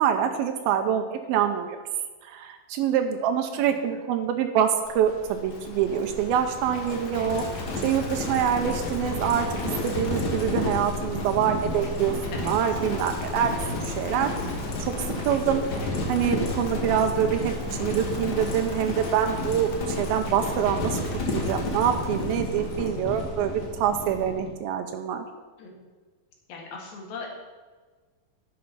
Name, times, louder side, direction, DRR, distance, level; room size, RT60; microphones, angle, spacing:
voice 1, 0.0-1.8 2.2-7.4 7.8-9.5 9.8-12.2 12.4-13.5 13.8-14.3 14.8-14.9 15.3-17.5 17.8-21.0 21.3-25.2, right 9 dB, 85° right, 5 dB, 2.6 m, -25 dB
voice 2, 3.5-4.0 12.3-12.8 25.6-25.7 26.5-27.3, left 4 dB, 90° left, 0 dB, 3.8 m, -40 dB
Livestock farm animals working animals, 4.9-24.5, left 2 dB, 75° left, 0.9 m, -31 dB
10.5 x 7.8 x 5.6 m, 1.4 s
omnidirectional pair, 4.2 m